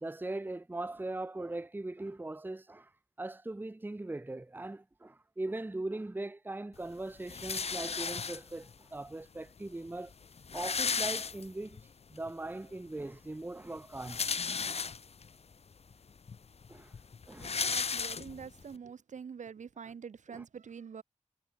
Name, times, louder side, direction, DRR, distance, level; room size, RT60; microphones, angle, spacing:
voice 1, 0.0-2.9 3.2-10.1 10.5-14.2 16.7-16.9 17.3-17.6 20.3-20.4, right 2 dB, 15° right, 0.8 m, -40 dB
sound 1, 7.3-8.7 9.6-9.7 9.9-10.0 10.2-11.8 12.3-12.4 13.8-15.3 15.9-16.0 16.3-18.6, left 5 dB, 55° left, 1.0 m, -35 dB
voice 2, 17.4-21.0, right 6 dB, 80° right, 1.9 m, -46 dB
cardioid pair, 70°, 12 cm